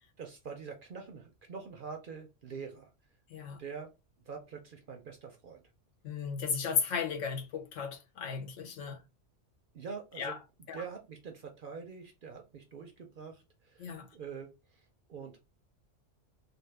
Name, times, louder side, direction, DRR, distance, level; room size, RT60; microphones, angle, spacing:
voice 1, 0.2-2.9 3.4-3.9 4.3-5.6 9.7-10.4 10.7-15.4, right 5 dB, 55° right, 0.6 m, -45 dB
voice 2, 6.0-9.0 10.2-10.4 10.7-10.8 13.8-14.1, left 6 dB, 85° left, 1.1 m, -35 dB
2.6 x 2.4 x 3.2 m
omnidirectional pair, 1.3 m